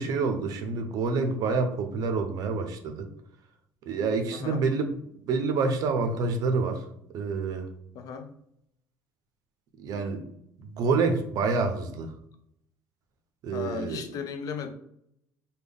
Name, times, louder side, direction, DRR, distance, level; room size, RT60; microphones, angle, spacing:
voice 1, 0.0-3.1 3.9-4.9 5.3-6.8 7.1-7.7 9.8-10.3 10.6-12.1 13.4-14.0, right 4 dB, 60° right, 7 dB, 0.6 m, -27 dB
voice 2, 4.3-4.6 7.9-8.3 13.5-14.7, left 6 dB, 60° left, 7 dB, 0.5 m, -35 dB
3.4 x 2.2 x 3.5 m, 0.74 s
cardioid pair, 120°, 7 cm